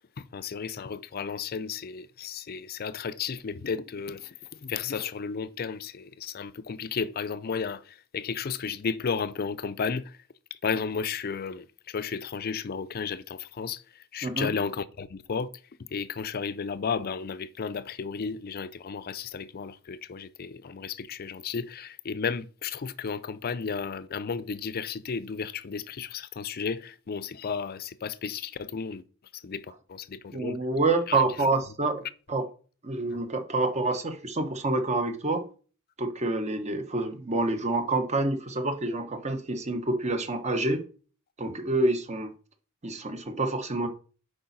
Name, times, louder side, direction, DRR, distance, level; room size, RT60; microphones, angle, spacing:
voice 1, 0.2-10.2 10.6-15.5 15.9-29.0 29.3-30.6 31.1-31.2 33.1-33.2, left 5 dB, 45° left, 0.5 m, -33 dB
voice 2, 30.3-32.0 32.3-32.4 32.8-35.4 36.0-40.8 41.4-42.3 42.8-43.9, right 2 dB, 35° right, 1.0 m, -27 dB
8.6 x 5.0 x 4.1 m
head